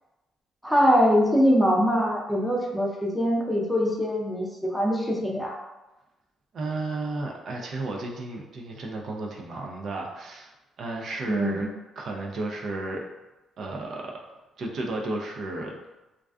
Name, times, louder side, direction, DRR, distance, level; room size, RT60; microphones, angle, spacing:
voice 1, 0.6-5.6 11.2-11.7, equal, ahead, -2 dB, 0.5 m, -23 dB
voice 2, 6.5-10.5 10.8-11.7 12.0-13.0 13.6-14.2 14.6-15.8, right 2 dB, 65° right, 0 dB, 0.4 m, -33 dB
2.4 x 2.3 x 2.3 m, 1.0 s
cardioid pair, 90°, 0 cm